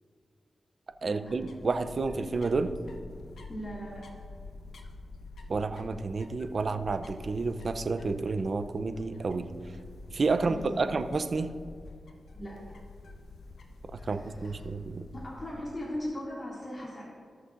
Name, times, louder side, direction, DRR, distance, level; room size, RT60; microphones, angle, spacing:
sound 1, 0.9-16.2, left 3 dB, 85° left, 0.8 m, -47 dB
voice 1, 1.0-2.7 5.5-9.5 10.1-11.5 14.0-15.0, right 4 dB, 60° right, 10 dB, 0.5 m, -30 dB
voice 2, 3.5-4.0 10.5-10.8 12.3-12.5 14.0-14.6 15.1-17.0, equal, 40° left, -6 dB, 2.4 m, -38 dB
19.0 x 6.5 x 2.5 m, 2.2 s
cardioid pair, 65°, 0 cm